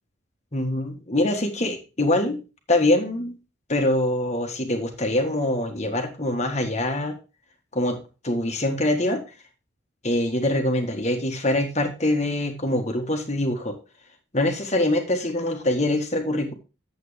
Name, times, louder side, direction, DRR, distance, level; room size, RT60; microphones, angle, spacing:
voice 1, 0.5-2.4 2.7-3.4 3.7-7.2 7.7-8.0 8.2-9.2 10.0-13.8 14.3-16.5, left 1 dB, 35° left, 4 dB, 1.6 m, -24 dB
9.4 x 7.8 x 3.4 m, 0.32 s
head